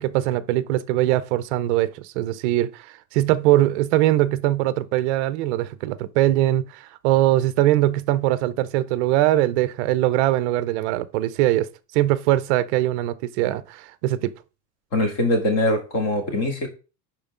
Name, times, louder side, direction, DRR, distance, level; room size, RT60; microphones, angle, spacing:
voice 1, 0.0-2.7 3.1-11.7 11.9-14.3, right 14 dB, 50° right, 0.5 m, -21 dB
voice 2, 14.9-16.7, left 1 dB, 40° left, 2.2 m, -22 dB
11.0 x 4.4 x 3.6 m
supercardioid pair, 175°, 48 cm